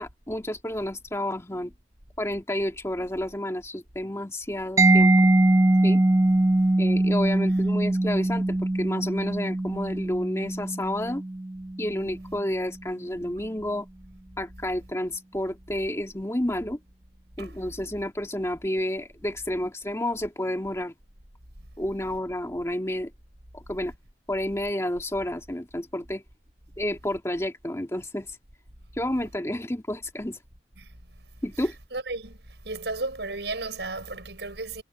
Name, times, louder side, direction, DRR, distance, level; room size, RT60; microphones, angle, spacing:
voice 1, 0.0-1.7 2.2-5.1 5.8-6.0 6.8-11.2 11.8-13.9 14.4-16.8 17.4-20.9 21.8-23.1 23.5-23.9 24.3-26.2 26.8-28.4 29.0-30.4 31.4-31.8, left 1 dB, 15° left, 1.9 m, -30 dB
Mallet percussion, 4.8-12.3, right 2 dB, 20° right, 0.4 m, -22 dB
voice 2, 31.9-32.4 32.6-34.8, right 3 dB, 75° right, 6.6 m, -34 dB
head